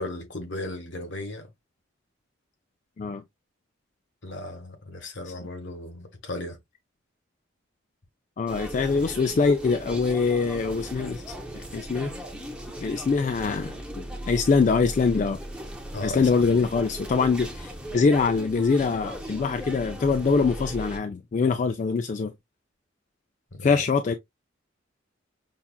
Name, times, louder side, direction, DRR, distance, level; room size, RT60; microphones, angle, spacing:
voice 1, 0.0-1.5 4.2-6.6 8.8-9.1 11.0-11.1 15.9-16.7 23.6-23.8, left 1 dB, 70° left, 1.2 m, -36 dB
voice 2, 8.4-11.2 11.7-12.1 12.8-15.4 16.0-22.3 23.6-24.1, left 4 dB, 40° left, 0.3 m, -24 dB
sound 1, 8.5-21.0, equal, 5° right, 0.7 m, -37 dB
5.6 x 2.3 x 2.2 m
head